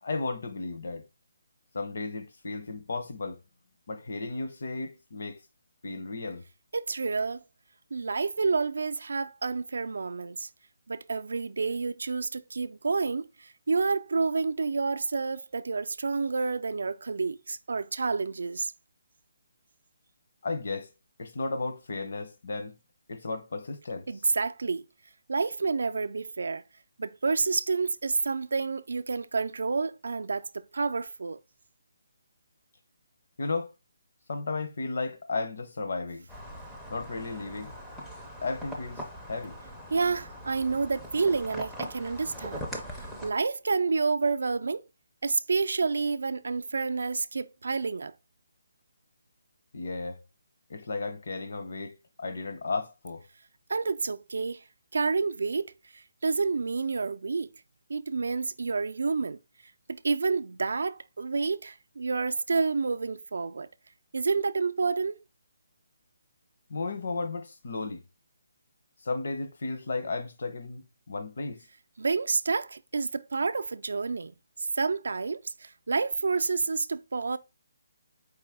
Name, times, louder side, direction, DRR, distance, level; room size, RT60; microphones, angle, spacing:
voice 1, 0.0-1.1 1.7-3.4 3.9-5.4 5.8-6.4 20.4-20.9 21.2-22.7 23.1-24.1 33.4-33.7 34.3-36.2 36.9-37.7 38.4-39.6 49.7-50.2 50.7-53.2 66.7-68.0 69.0-71.6, left 3 dB, 55° left, 0.8 m, -34 dB
voice 2, 6.7-7.4 7.9-10.5 10.9-18.7 24.1-24.8 25.3-26.6 27.0-31.4 39.9-42.7 43.2-44.9 45.2-48.1 53.7-54.6 54.9-57.5 57.9-59.4 59.9-63.7 64.1-65.2 72.0-74.3 74.6-77.4, right 4 dB, 70° right, 0.3 m, -29 dB
sound 1, 36.3-43.3, equal, 5° left, 0.4 m, -41 dB
4.7 x 2.7 x 3.5 m
hypercardioid pair, 175°, 0 cm